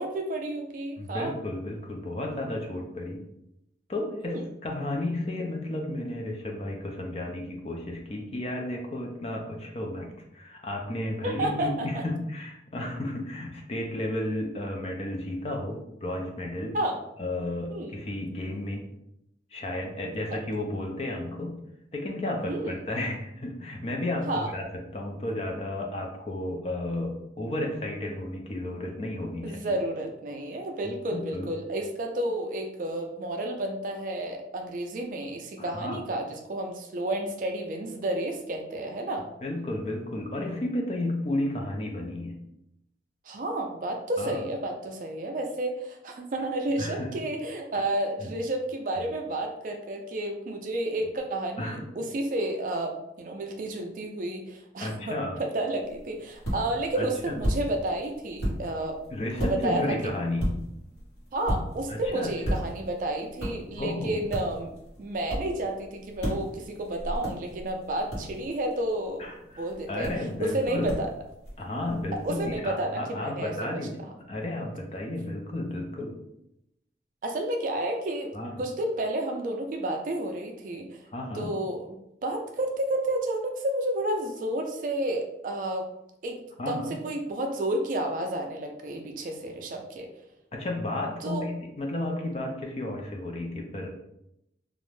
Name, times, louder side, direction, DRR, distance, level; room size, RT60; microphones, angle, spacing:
voice 1, 0.0-1.3 4.2-4.4 11.2-12.0 16.7-17.0 17.7-18.0 22.5-22.8 24.3-24.5 29.4-39.3 43.3-55.1 55.4-59.0 59.4-59.9 61.3-64.7 65.0-69.2 69.6-70.1 70.4-71.1 72.2-73.5 77.2-78.3 78.6-81.0 81.3-81.9 82.2-85.9 86.2-90.1 91.2-91.5, right 1 dB, 45° right, 3 dB, 0.3 m, -31 dB
voice 2, 1.0-3.2 3.9-16.8 17.2-18.8 19.5-21.6 21.9-29.7 31.1-31.5 35.6-36.0 39.4-42.4 44.2-44.4 46.8-47.1 48.2-48.3 51.6-51.8 54.8-55.4 57.0-57.4 59.1-60.5 61.9-62.6 63.8-64.2 69.2-70.9 71.6-76.2 78.3-78.6 81.1-81.5 86.6-87.0 90.5-93.9, left 1 dB, 35° left, 1 dB, 0.4 m, -33 dB
sound 1, 55.8-72.6, equal, 75° left, 1.1 m, -36 dB
2.4 x 2.1 x 3.1 m, 0.83 s
head